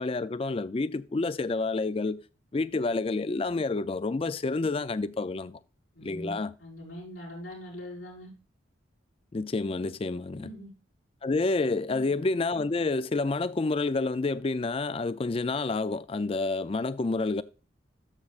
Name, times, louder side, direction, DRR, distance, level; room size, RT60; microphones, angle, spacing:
voice 1, 0.0-2.2 2.5-5.6 6.0-6.5 9.3-10.5 11.2-17.4, left 3 dB, 30° left, 0.4 m, -29 dB
voice 2, 5.9-8.3 10.3-10.7 11.9-12.1, left 1 dB, 85° left, 5.3 m, -42 dB
13.0 x 6.4 x 2.4 m
head